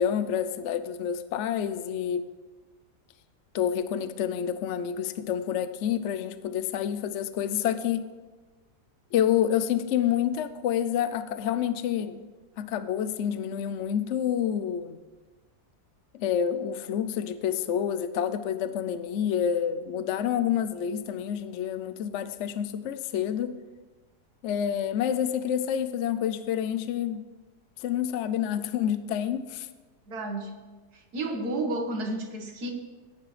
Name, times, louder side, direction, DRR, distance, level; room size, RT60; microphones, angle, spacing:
voice 1, 0.0-2.3 3.5-8.0 9.1-12.3 12.6-15.0 16.1-23.6 24.4-27.2 27.8-29.7, left 9 dB, 65° left, 12 dB, 0.7 m, -28 dB
voice 2, 30.1-30.5 30.9-32.7, right 2 dB, 70° right, 3 dB, 2.0 m, -31 dB
16.5 x 9.6 x 3.3 m, 1.2 s
omnidirectional pair, 1.8 m